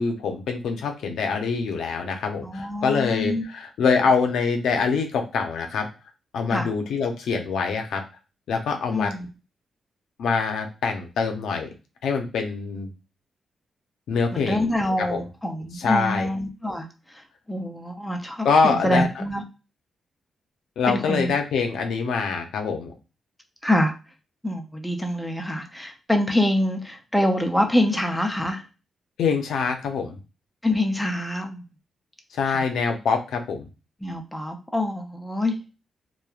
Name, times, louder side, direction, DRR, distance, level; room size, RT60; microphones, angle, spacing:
voice 1, 0.0-5.9 6.3-8.0 8.5-9.1 10.2-11.7 12.0-12.9 14.1-14.7 15.0-15.2 15.7-16.3 18.4-19.1 20.8-22.9 29.2-30.2 32.3-33.7, left 5 dB, 90° left, 4 dB, 0.5 m, -24 dB
voice 2, 2.4-3.4 6.5-6.7 8.9-9.3 14.3-16.9 17.5-19.4 20.9-21.3 23.6-23.9 24.4-28.6 30.6-31.6 32.5-32.7 34.0-35.6, left 1 dB, 5° left, 4 dB, 0.5 m, -25 dB
3.0 x 2.2 x 2.3 m, 0.30 s
cardioid pair, 110°, 0 cm